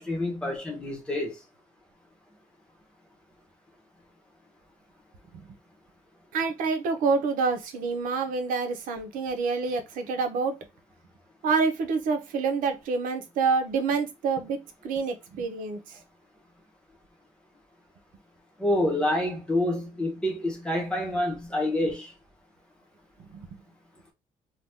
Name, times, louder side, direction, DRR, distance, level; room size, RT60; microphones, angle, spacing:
voice 1, 0.0-1.4 18.6-22.1, left 1 dB, 5° left, 1.0 m, -27 dB
voice 2, 6.3-10.6 11.4-16.0 23.2-23.6, right 4 dB, 85° right, 0.7 m, -27 dB
2.8 x 2.3 x 3.4 m
cardioid pair, 170°, 14 cm